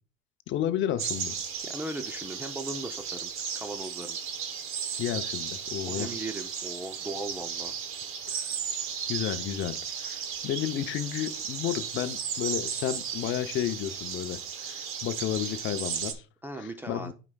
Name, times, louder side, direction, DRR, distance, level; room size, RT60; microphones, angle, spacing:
voice 1, 0.5-1.3 5.0-6.1 8.3-8.4 9.1-16.2 16.6-17.1, left 11 dB, 40° left, 0.6 m, -32 dB
sound 1, 1.0-16.1, right 7 dB, 45° right, 1.0 m, -35 dB
voice 2, 1.6-4.2 5.9-7.7 16.4-17.1, right 1 dB, 5° right, 0.4 m, -38 dB
9.5 x 5.0 x 2.3 m
supercardioid pair, 115°, 30 cm